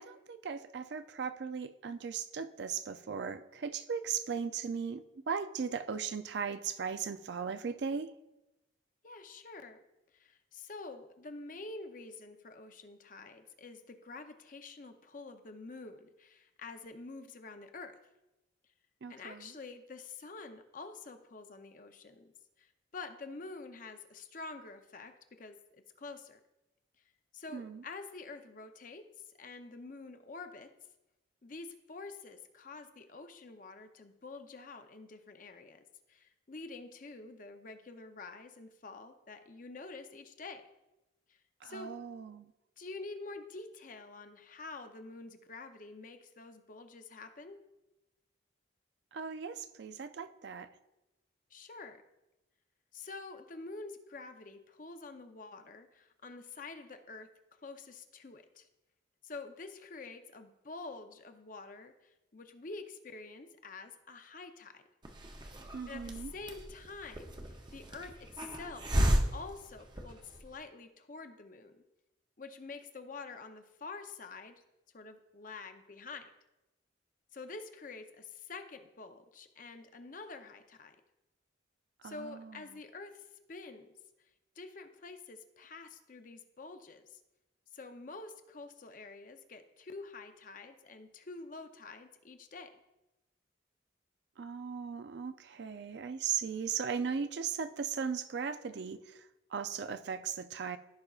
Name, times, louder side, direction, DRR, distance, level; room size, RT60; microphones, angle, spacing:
voice 1, 0.0-8.1 19.0-19.5 27.5-27.8 41.6-42.5 49.1-50.7 65.7-66.3 82.0-82.6 94.4-99.3 99.5-100.8, right 6 dB, 65° right, 11 dB, 0.4 m, -37 dB
voice 2, 9.0-9.8 10.1-17.9 19.1-26.4 27.3-30.7 31.4-35.8 36.1-40.7 41.3-41.9 42.8-47.6 51.5-52.0 52.9-57.3 57.6-58.7 59.2-64.8 65.9-71.8 72.4-74.6 74.9-76.3 77.3-81.0 82.0-83.9 84.6-87.2 87.7-92.7, left 3 dB, 45° left, 7 dB, 0.6 m, -47 dB
Hiss, 65.0-70.5, equal, 25° right, 0.6 m, -34 dB
15.0 x 5.1 x 2.4 m, 0.96 s
head